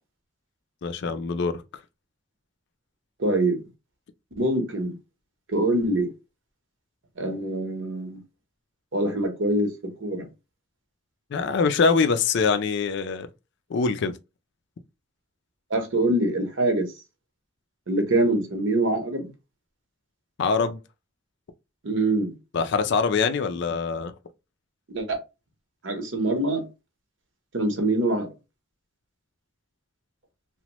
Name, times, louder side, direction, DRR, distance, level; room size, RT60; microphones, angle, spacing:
voice 1, 0.8-1.6 11.3-13.3 13.7-14.1 20.4-20.8 22.5-24.1, left 5 dB, 60° left, 0.4 m, -23 dB
voice 2, 3.2-3.6 4.4-5.0 5.5-6.1 7.2-8.2 8.9-10.3 15.7-16.9 17.9-19.3 21.8-22.3 24.9-25.2 25.8-26.6 27.5-28.3, right 1 dB, 65° right, 0.8 m, -24 dB
2.9 x 2.1 x 2.9 m
head